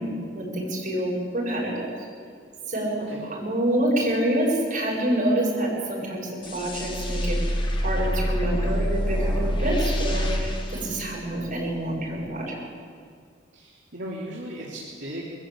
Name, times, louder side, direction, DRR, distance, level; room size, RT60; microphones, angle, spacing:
voice 1, 0.0-1.9 2.7-3.0 3.3-7.4 7.8-12.5, right 1 dB, 40° right, -4 dB, 7.9 m, -27 dB
sound 1, 6.4-11.8, equal, 25° left, 2.0 m, -26 dB
voice 2, 13.5-15.2, equal, 65° right, -7 dB, 3.3 m, -36 dB
22.0 x 14.5 x 8.7 m, 2.1 s
head